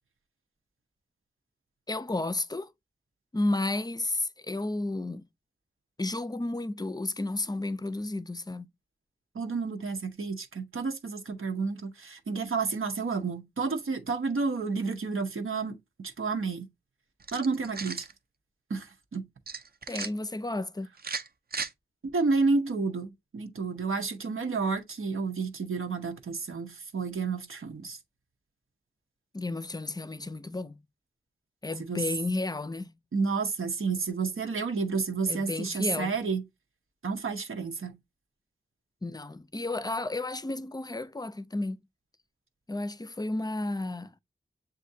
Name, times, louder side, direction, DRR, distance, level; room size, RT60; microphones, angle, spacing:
voice 1, 1.9-2.7 3.3-5.2 6.0-8.7 19.9-20.9 29.3-30.8 31.6-32.9 35.3-36.2 39.0-41.8 42.7-44.1, left 2 dB, 20° left, 0.4 m, -32 dB
voice 2, 9.3-16.7 17.3-18.1 18.7-18.9 19.1-19.3 22.1-28.0 31.8-32.0 33.1-36.4 37.0-38.0, right 4 dB, 85° right, 0.8 m, -30 dB
sound 1, 17.2-18.1 19.5-20.1 21.0-21.7, right 5 dB, 50° right, 0.5 m, -36 dB
7.3 x 2.5 x 2.6 m
wide cardioid pair, 50°, 21 cm